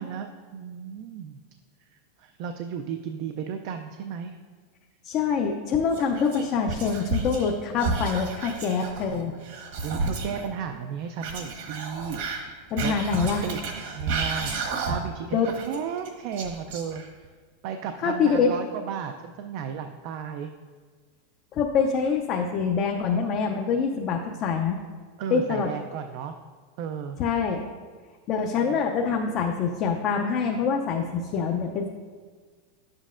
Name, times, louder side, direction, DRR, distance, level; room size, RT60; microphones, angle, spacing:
voice 1, 0.0-1.4 1.8-4.4 9.1-9.3 9.8-12.3 12.8-12.9 13.4-13.7 13.9-17.0 17.6-20.5 25.2-26.4 26.8-27.2 28.7-28.8, right 7 dB, 45° right, 6 dB, 0.3 m, -34 dB
voice 2, 5.0-9.3 12.7-13.5 15.3-15.5 18.0-18.5 21.5-24.8 25.3-25.7 27.2-27.7 28.3-31.9, left 6 dB, 30° left, 2 dB, 0.4 m, -25 dB
Whispering, 5.9-7.5 7.8-10.4 11.2-15.2 15.4-17.3, right 3 dB, 60° right, 1.2 m, -31 dB
9.8 x 7.4 x 2.5 m, 1.5 s
supercardioid pair, 170°, 0 cm